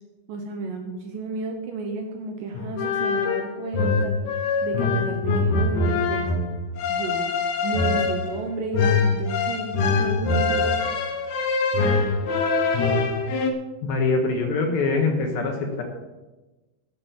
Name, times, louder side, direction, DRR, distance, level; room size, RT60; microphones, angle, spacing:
voice 1, 0.3-4.1 4.6-6.3 6.9-7.3 7.6-10.8, right 3 dB, 75° right, 4 dB, 2.1 m, -32 dB
sound 1, 2.5-13.5, left 4 dB, 90° left, 1.6 m, -23 dB
voice 2, 13.9-15.8, left 3 dB, 65° left, 3 dB, 2.8 m, -23 dB
12.0 x 8.3 x 6.9 m, 1.1 s
omnidirectional pair, 5.2 m